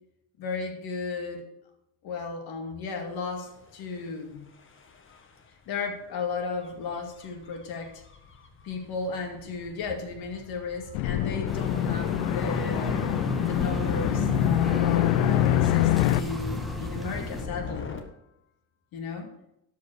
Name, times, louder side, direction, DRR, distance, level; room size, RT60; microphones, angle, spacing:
voice 1, 0.4-1.4 2.0-4.5 5.7-8.0 8.6-13.0 13.4-18.0 18.9-19.3, left 4 dB, 55° left, 3 dB, 2.5 m, -34 dB
Gull seagull / Waves surf / Siren, 3.3-18.0, left 5 dB, 30° left, 1.5 m, -42 dB
sound 1, 10.9-16.2, left 15 dB, 70° left, 0.6 m, -25 dB
sound 2, 11.5-17.5, right 1 dB, ahead, 1.3 m, -33 dB
12.0 x 5.4 x 6.4 m, 0.82 s
cardioid pair, 120°, 43 cm